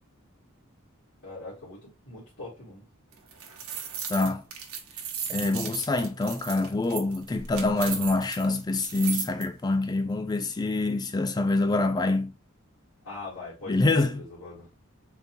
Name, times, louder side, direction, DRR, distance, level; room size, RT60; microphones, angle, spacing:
voice 1, 1.2-2.9 13.0-13.8 14.1-14.7, left 3 dB, 85° left, 1.5 m, -42 dB
sound 1, 3.1-9.4, right 7 dB, 75° right, 0.8 m, -36 dB
voice 2, 4.1-4.4 5.3-12.3 13.7-14.3, left 2 dB, 20° left, 0.4 m, -26 dB
3.9 x 2.6 x 2.2 m
head